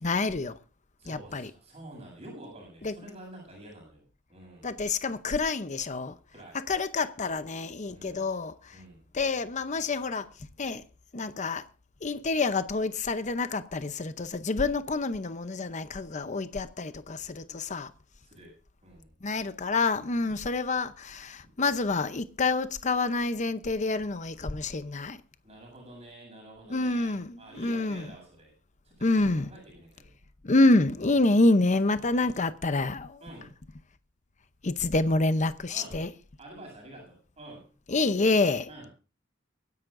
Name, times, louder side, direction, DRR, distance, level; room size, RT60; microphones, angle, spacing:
voice 1, 0.0-0.6 1.1-1.5 2.8-2.9 4.6-6.2 6.7-8.8 9.1-10.3 10.6-10.8 11.1-11.6 12.0-17.9 19.2-25.2 26.7-28.1 29.0-29.5 30.4-33.2 34.6-36.1 37.9-38.7, left 3 dB, 40° left, 0.7 m, -27 dB
voice 2, 1.0-4.0 4.3-4.8 6.3-6.6 7.9-8.3 8.7-9.0 18.2-18.5 18.8-19.2 20.1-20.4 25.4-28.5 28.8-30.3 31.1-31.2 31.9-32.4 33.2-33.5 35.7-36.0 36.4-37.7 38.7-38.9, right 1 dB, 35° right, 7.8 m, -48 dB
23.5 x 11.0 x 2.6 m
head